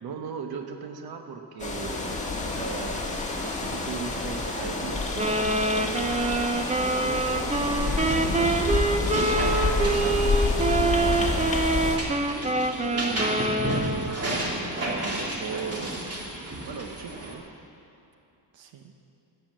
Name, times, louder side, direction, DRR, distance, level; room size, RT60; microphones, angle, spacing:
voice 1, 0.0-8.3 9.0-10.2 12.8-17.5, right 6 dB, 55° right, 5 dB, 1.2 m, -38 dB
sound 1, 1.6-12.0, left 3 dB, 15° left, 1.7 m, -28 dB
Wind instrument woodwind instrument, 5.2-14.2, right 2 dB, 15° right, 0.6 m, -26 dB
sound 2, 7.5-17.3, right 1 dB, 35° right, 2.5 m, -33 dB
voice 2, 9.1-10.1 10.8-11.5 18.5-18.9, right 6 dB, 85° right, 5 dB, 1.3 m, -40 dB
14.5 x 9.5 x 7.6 m, 2.8 s
cardioid pair, 140°, 44 cm